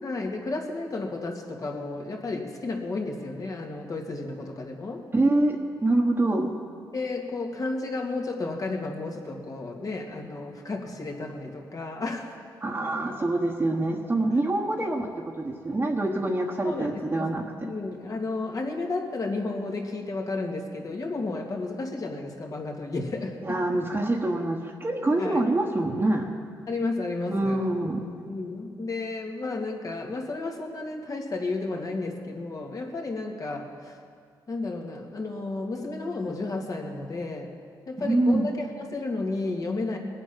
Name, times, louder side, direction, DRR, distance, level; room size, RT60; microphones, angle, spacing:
voice 1, 0.0-5.0 6.9-12.3 14.8-14.9 16.6-23.8 25.2-25.4 26.7-27.6 28.3-33.9 34.5-37.6 37.9-40.0, left 3 dB, 45° left, 1 dB, 2.3 m, -32 dB
voice 2, 5.1-6.5 12.6-15.1 15.4-17.4 23.4-26.3 27.3-28.0 38.0-38.4, right 2 dB, 25° right, -3 dB, 1.4 m, -25 dB
21.0 x 8.2 x 5.8 m, 2.1 s
supercardioid pair, 65°, 8 cm